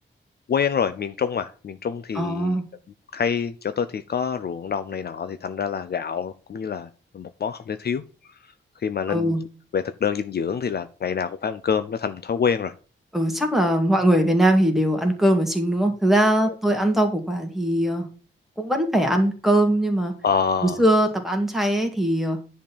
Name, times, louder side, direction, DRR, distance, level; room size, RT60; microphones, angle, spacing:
voice 1, 0.5-2.6 3.1-8.0 8.8-9.4 9.7-12.7 16.4-16.5 20.2-20.8, left 6 dB, 50° left, 11 dB, 0.6 m, -26 dB
voice 2, 2.1-2.6 9.1-9.4 13.1-18.1 18.6-20.1 20.6-22.4, right 1 dB, ahead, 3 dB, 2.1 m, -21 dB
10.5 x 4.3 x 7.1 m, 0.37 s
wide cardioid pair, 170°, 21 cm